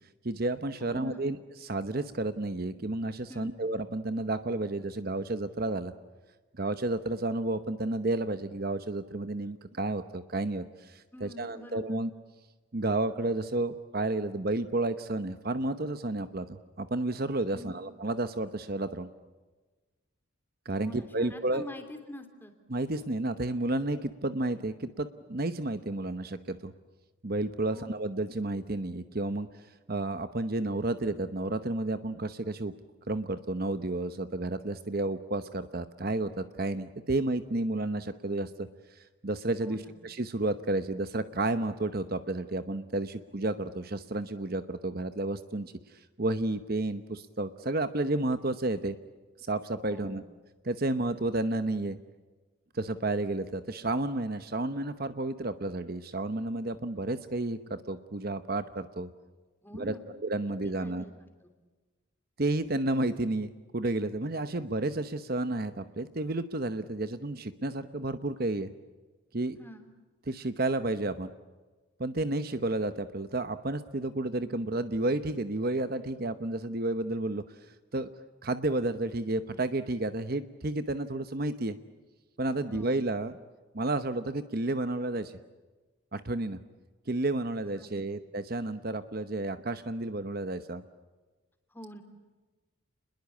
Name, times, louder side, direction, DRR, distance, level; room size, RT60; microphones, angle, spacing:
voice 1, 0.2-5.9 6.5-12.1 12.7-19.1 20.6-21.6 22.7-26.7 27.2-29.5 29.9-32.7 33.1-49.0 49.4-50.2 50.6-52.0 52.7-59.1 59.7-59.9 60.2-61.0 62.4-68.7 69.3-69.6 70.3-71.3 72.0-77.4 77.9-78.1 78.4-81.8 82.4-83.3 83.7-85.4 86.1-86.6 87.1-90.8, right 2 dB, 45° right, 11 dB, 0.9 m, -31 dB
voice 2, 0.8-1.3 3.3-3.6 11.1-12.0 17.5-17.8 20.8-22.5 27.7-27.9 39.6-40.0 49.9-50.2 59.6-60.1 60.6-61.1 61.4-61.5 69.6-69.9 82.7-83.0 87.8-88.2 91.7-92.0, left 1 dB, 10° left, 6 dB, 3.1 m, -46 dB
29.5 x 21.5 x 8.5 m, 1.3 s
head